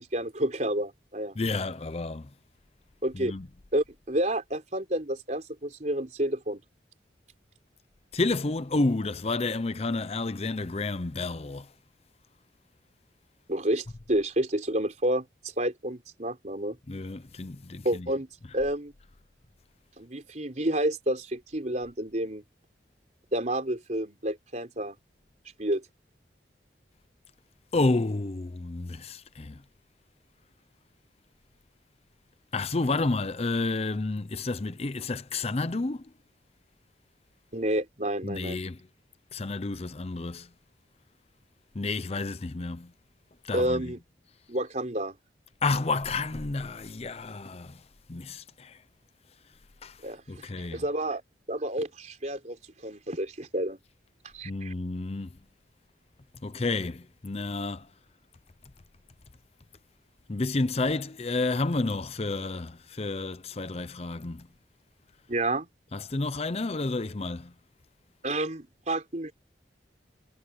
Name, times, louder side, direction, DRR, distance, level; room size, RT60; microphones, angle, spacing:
voice 1, 0.0-1.4 3.0-3.3 3.7-6.6 13.5-16.8 17.8-18.3 18.5-18.9 20.0-22.4 23.3-25.0 25.6-25.8 37.5-38.6 43.5-44.0 44.5-45.1 50.0-50.4 50.7-51.2 51.5-53.8 54.3-54.7 65.3-65.7 68.2-69.3, right 1 dB, 40° right, 3.9 m, -30 dB
voice 2, 1.4-2.3 3.1-3.5 8.1-11.7 16.9-18.1 27.7-29.6 32.5-36.1 38.2-38.8 39.3-40.5 41.7-42.9 43.4-43.9 45.6-47.8 48.1-48.8 49.8-50.0 50.3-50.8 54.4-55.3 56.4-57.9 60.3-64.5 65.9-67.5, left 3 dB, 35° left, 0.6 m, -30 dB
head